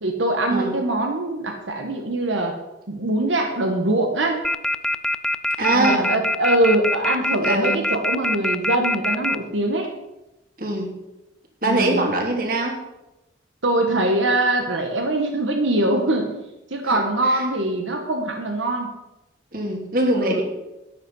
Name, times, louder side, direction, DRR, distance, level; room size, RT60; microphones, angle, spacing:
voice 1, 0.0-2.6 2.9-4.4 5.7-9.9 11.6-12.1 13.6-16.3 16.7-18.9 20.2-20.4, right 1 dB, 90° right, 3 dB, 1.5 m, -22 dB
sound 1, 4.4-9.3, left 1 dB, 5° left, 0.3 m, -22 dB
voice 2, 5.6-6.1 7.4-7.8 10.6-10.9 11.6-12.7 16.8-17.0 17.3-17.4 19.5-20.4, right 2 dB, 50° right, 2 dB, 2.8 m, -22 dB
13.0 x 9.8 x 5.5 m, 0.96 s
head